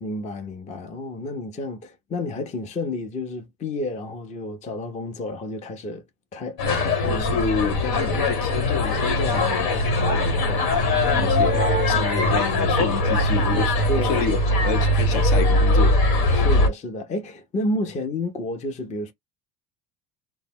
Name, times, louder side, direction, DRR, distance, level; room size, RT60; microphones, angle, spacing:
voice 1, 0.0-6.0 6.3-7.2 8.1-8.2 11.1-11.4 13.7-14.2 16.3-19.1, left 1 dB, 15° left, 0.4 m, -30 dB
sound 1, 6.6-16.7, left 1 dB, 80° left, 1.2 m, -21 dB
voice 2, 7.0-16.0, left 6 dB, 65° left, 0.8 m, -29 dB
2.0 x 2.0 x 3.4 m
supercardioid pair, 90°, 47 cm